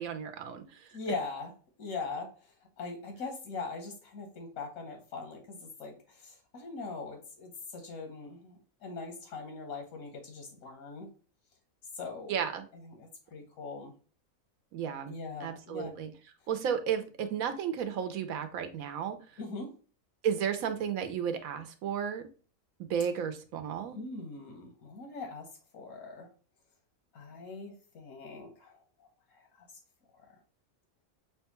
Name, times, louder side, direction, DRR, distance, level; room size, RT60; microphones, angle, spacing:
voice 1, 0.0-0.8 12.3-12.7 14.7-15.1 15.4-16.1 16.5-19.2 20.2-22.3 22.9-24.0, right 8 dB, 85° right, 8 dB, 1.1 m, -33 dB
voice 2, 0.9-1.5 1.8-2.3 2.8-11.1 11.9-12.3 12.8-13.9 15.1-15.9 19.4-19.7 23.9-25.5 25.7-26.3 27.1-28.8, left 4 dB, 90° left, 3 dB, 1.4 m, -41 dB
6.1 x 2.2 x 2.9 m, 0.38 s
omnidirectional pair, 1.4 m